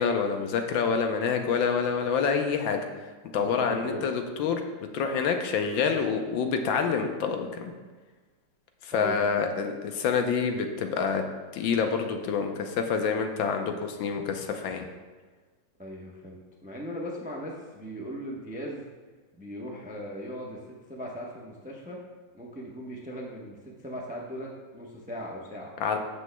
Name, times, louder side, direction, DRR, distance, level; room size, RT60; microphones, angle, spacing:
voice 1, 0.0-2.8 3.3-4.6 4.9-7.6 8.8-11.2 11.5-14.9 25.8-26.0, left 6 dB, 80° left, 5 dB, 1.5 m, -27 dB
voice 2, 3.3-4.0 8.9-9.5 15.8-18.8 19.4-22.0 22.3-25.7, equal, 10° right, -2 dB, 0.3 m, -39 dB
14.0 x 6.2 x 2.2 m, 1.4 s
omnidirectional pair, 2.0 m